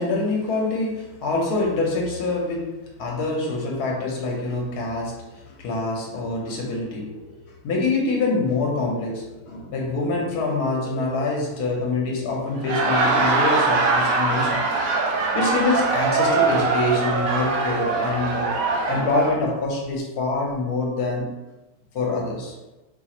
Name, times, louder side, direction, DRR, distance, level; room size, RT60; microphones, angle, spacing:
voice 1, 0.0-7.4 7.6-14.6 15.3-18.5 18.9-21.3 21.9-22.6, left 3 dB, 80° left, -1 dB, 1.3 m, -25 dB
Laughter, 12.5-19.4, right 3 dB, 70° right, 1.0 m, -22 dB
4.4 x 2.4 x 2.9 m, 1.0 s
omnidirectional pair, 1.7 m